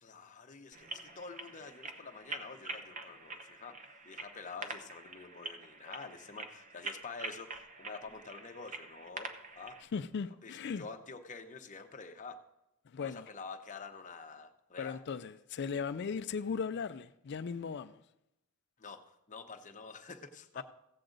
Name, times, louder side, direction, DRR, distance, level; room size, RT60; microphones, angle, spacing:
voice 1, 0.0-3.8 4.0-9.3 9.6-9.8 10.4-12.4 13.0-15.0 18.8-19.0 19.3-20.6, left 4 dB, 35° left, 0.8 m, -47 dB
sound 1, 0.7-9.8, right 3 dB, 35° right, 0.8 m, -46 dB
voice 2, 9.9-10.8 12.9-13.3 14.8-18.0 20.6-20.7, left 5 dB, 50° left, 0.4 m, -37 dB
16.0 x 7.6 x 3.9 m
head